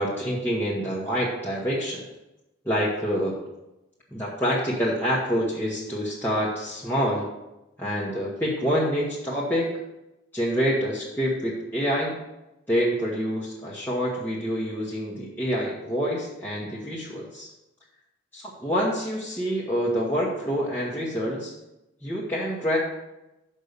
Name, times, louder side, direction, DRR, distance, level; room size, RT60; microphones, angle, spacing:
voice 1, 0.0-2.1 2.6-3.4 4.1-7.3 7.8-9.8 10.3-12.1 12.7-17.5 18.3-21.5 22.0-22.8, equal, 10° left, -7 dB, 1.0 m, -27 dB
6.7 x 5.3 x 6.6 m, 0.96 s
head